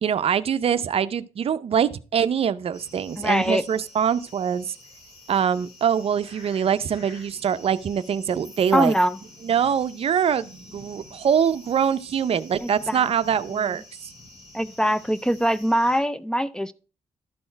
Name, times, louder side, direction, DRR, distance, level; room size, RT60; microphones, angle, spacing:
voice 1, 0.0-4.7 5.3-8.9 9.4-14.1, right 8 dB, 55° right, 0.5 m, -24 dB
sound 1, 2.7-16.0, left 2 dB, 60° left, 4.9 m, -48 dB
voice 2, 3.2-3.6 8.7-9.2 12.6-13.1 13.5-13.7 14.5-16.7, equal, 5° left, 0.5 m, -23 dB
13.0 x 4.3 x 4.4 m
cardioid pair, 85°, 12 cm